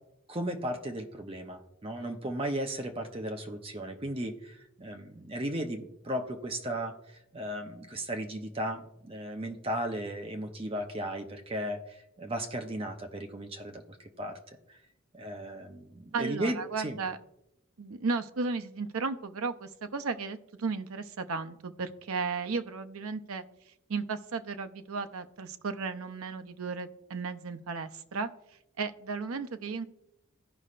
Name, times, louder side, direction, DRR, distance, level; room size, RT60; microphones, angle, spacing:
voice 1, 0.3-14.8 15.1-17.0, right 1 dB, 25° right, 5 dB, 0.7 m, -36 dB
voice 2, 16.1-17.2 17.8-28.3 28.8-29.9, right 4 dB, 75° right, 10 dB, 0.6 m, -35 dB
15.5 x 5.4 x 2.5 m, 0.83 s
head